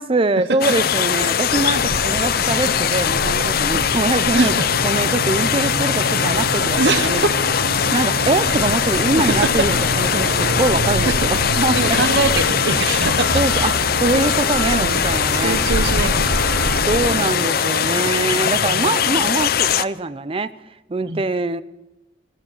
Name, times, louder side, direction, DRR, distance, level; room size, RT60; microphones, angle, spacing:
voice 1, 0.0-4.5 4.8-7.2 7.9-12.0 13.3-15.6 16.7-20.5 20.9-21.6, right 2 dB, 30° right, 0.5 m, -23 dB
sound 1, 0.6-19.8, left 8 dB, 50° left, 0.5 m, -21 dB
sound 2, 1.5-17.2, right 2 dB, 90° right, 1.2 m, -26 dB
voice 2, 4.3-4.7 6.8-7.3 9.1-9.5 11.1-11.2 11.7-13.4 14.7-15.0 15.4-16.9 17.2-17.5 18.3-19.0 21.1-21.2, right 3 dB, 65° right, 0.9 m, -24 dB
sound 3, 4.8-18.2, left 1 dB, 80° left, 6.6 m, -36 dB
15.5 x 14.0 x 6.6 m
head